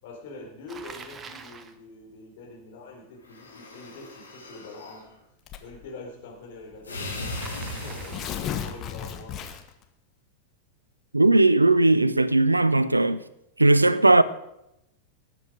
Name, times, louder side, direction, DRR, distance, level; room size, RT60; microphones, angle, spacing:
voice 1, 0.0-5.0 5.6-7.3 7.8-9.4, left 2 dB, 55° left, 4.5 m, -44 dB
Bicycle, 0.7-1.8 7.3-8.6, right 5 dB, 20° right, 1.0 m, -44 dB
sound 1, 3.2-5.0 6.8-8.8, left 2 dB, 75° left, 3.1 m, -38 dB
Tearing, 5.5-5.9 6.7-6.8 7.1-7.2 7.9-9.8, left 9 dB, 35° left, 1.4 m, -34 dB
voice 2, 11.1-13.2 13.6-14.2, right 2 dB, 85° right, 0.6 m, -18 dB
18.5 x 8.6 x 5.1 m
figure-of-eight pair, 90°, 0 cm